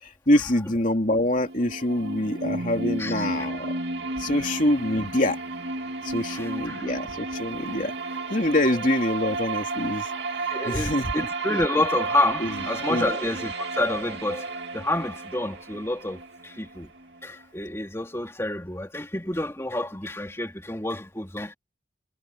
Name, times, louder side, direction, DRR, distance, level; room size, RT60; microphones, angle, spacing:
voice 1, 0.0-3.8 4.2-5.4 6.0-7.9 8.3-10.1 10.7-11.3 12.4-12.5 12.9-13.3, left 1 dB, 45° left, 3.2 m, -25 dB
sound 1, 1.3-17.2, right 3 dB, 75° right, 2.3 m, -32 dB
voice 2, 6.2-6.9 10.5-16.9 17.2-21.5, left 2 dB, 15° left, 3.0 m, -29 dB
head